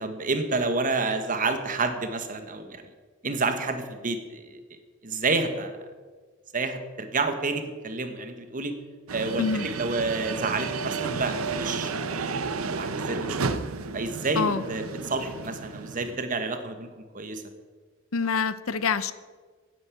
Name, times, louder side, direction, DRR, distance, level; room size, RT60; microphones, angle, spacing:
voice 1, 0.0-2.8 3.2-4.6 5.0-5.7 6.5-8.7 9.1-9.5 9.8-12.4 12.7-13.3 13.9-16.9 17.1-17.4, right 3 dB, 40° right, 8 dB, 1.4 m, -29 dB
sound 1, 9.1-16.2, right 4 dB, 90° right, 0.8 m, -32 dB
voice 2, 18.1-19.1, left 5 dB, 75° left, 15 dB, 0.7 m, -26 dB
10.5 x 9.7 x 8.4 m, 1.5 s
head